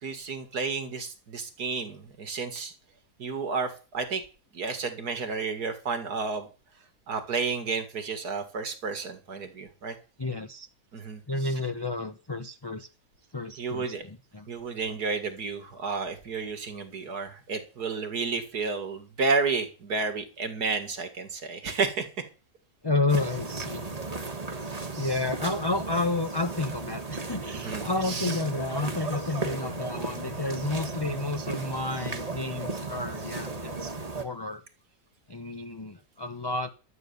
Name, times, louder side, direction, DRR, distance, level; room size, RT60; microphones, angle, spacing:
voice 1, 0.0-2.7 3.2-4.2 4.5-6.5 7.1-10.0 10.9-11.6 13.6-14.0 14.5-22.1 24.9-25.3 27.5-28.4, right 4 dB, 70° right, 8 dB, 2.5 m, -31 dB
voice 2, 10.2-10.7 11.3-12.9 13.3-14.5 22.8-23.8 25.0-34.6 35.3-36.7, left 2 dB, 20° left, 8 dB, 0.6 m, -31 dB
sound 1, 23.1-34.2, right 3 dB, 25° right, 1.5 m, -35 dB
12.5 x 9.0 x 6.9 m, 0.35 s
omnidirectional pair, 1.7 m